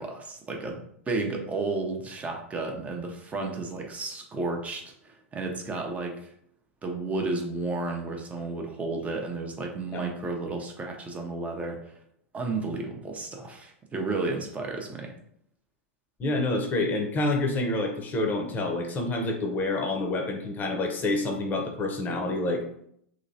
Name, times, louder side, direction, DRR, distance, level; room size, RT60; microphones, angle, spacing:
voice 1, 0.0-6.3 6.8-11.9 12.3-15.1, right 3 dB, 20° right, 2 dB, 0.7 m, -32 dB
voice 2, 16.2-22.6, left 2 dB, 25° left, 2 dB, 0.8 m, -28 dB
3.0 x 2.9 x 2.7 m, 0.68 s
hypercardioid pair, 100°, 7 cm